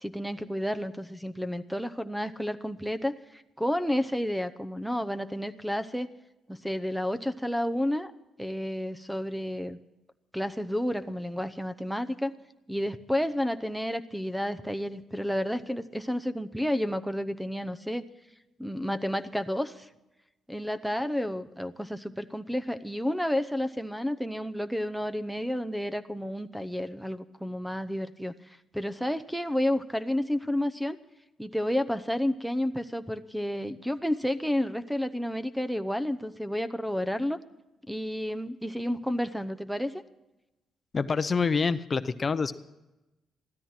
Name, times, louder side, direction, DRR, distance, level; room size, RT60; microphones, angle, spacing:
voice 1, 0.0-6.1 6.5-8.1 8.4-9.8 10.3-12.3 12.7-18.0 18.6-19.9 20.5-31.0 31.4-37.4 37.9-40.0, equal, ahead, 12 dB, 0.7 m, -31 dB
voice 2, 40.9-42.5, left 5 dB, 35° left, 12 dB, 0.7 m, -26 dB
15.5 x 13.0 x 5.8 m, 1.0 s
cardioid pair, 90°, 0 cm